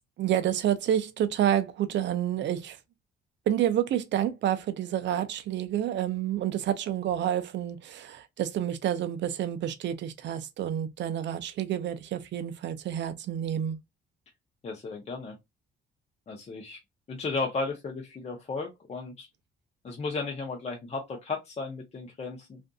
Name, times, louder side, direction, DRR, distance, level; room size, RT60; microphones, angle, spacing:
voice 1, 0.2-2.8 3.5-13.8, right 10 dB, 65° right, 0.5 m, -29 dB
voice 2, 14.6-15.4 16.3-16.8 17.1-19.3 19.8-22.6, left 3 dB, 35° left, 0.6 m, -34 dB
2.5 x 2.5 x 2.2 m
cardioid pair, 90°, 20 cm